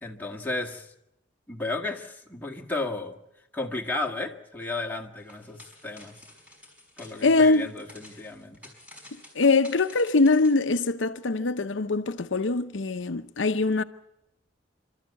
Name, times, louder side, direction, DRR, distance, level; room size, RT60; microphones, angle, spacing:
voice 1, 0.0-0.9 1.5-3.2 3.5-6.2 7.0-8.6, left 2 dB, 10° left, 2.1 m, -33 dB
change falling, 5.2-10.5, left 1 dB, 10° right, 5.6 m, -51 dB
voice 2, 7.2-7.7 9.3-13.8, left 3 dB, 80° left, 0.8 m, -23 dB
29.0 x 13.0 x 8.2 m
head